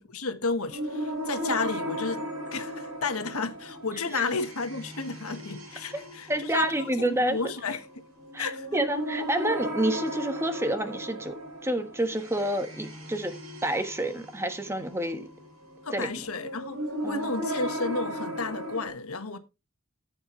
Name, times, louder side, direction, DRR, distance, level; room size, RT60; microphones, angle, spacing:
voice 1, 0.0-7.8 8.4-8.7 15.8-19.4, left 4 dB, 80° left, 1.4 m, -32 dB
sound 1, 0.7-18.9, equal, 75° right, 4.5 m, -36 dB
voice 2, 6.3-7.4 8.3-11.4 11.6-13.3 13.6-15.3 15.9-16.1 17.0-17.3, right 1 dB, 10° right, 1.3 m, -29 dB
14.0 x 7.9 x 3.2 m
head